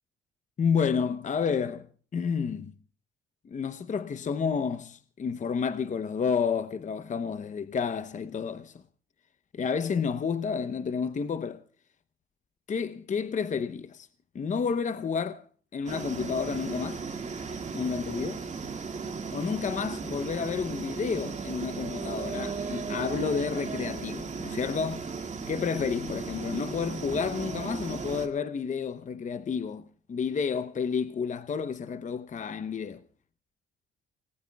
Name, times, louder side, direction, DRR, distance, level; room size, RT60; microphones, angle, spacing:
voice 1, 0.6-1.9 2.1-2.7 3.4-8.8 9.5-11.6 12.7-14.1 14.3-15.4 15.7-17.0 17.7-18.4 19.3-25.1 25.5-33.0, left 6 dB, 40° left, 0.8 m, -30 dB
sound 1, 15.9-28.3, right 5 dB, 35° right, 2.1 m, -36 dB
29.0 x 19.5 x 2.3 m
cardioid pair, 90°, 20 cm